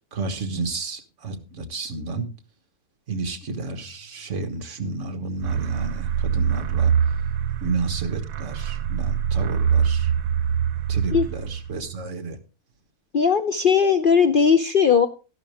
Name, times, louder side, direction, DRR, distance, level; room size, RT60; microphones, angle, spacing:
voice 1, 0.0-2.3 3.1-6.9 7.6-10.1 10.9-12.4, right 3 dB, 55° right, 6 dB, 1.7 m, -31 dB
sound 1, 5.4-11.9, right 8 dB, 85° right, 1.3 m, -24 dB
voice 2, 13.1-15.1, left 6 dB, 50° left, 9 dB, 0.6 m, -18 dB
12.5 x 12.0 x 3.5 m, 0.32 s
omnidirectional pair, 1.6 m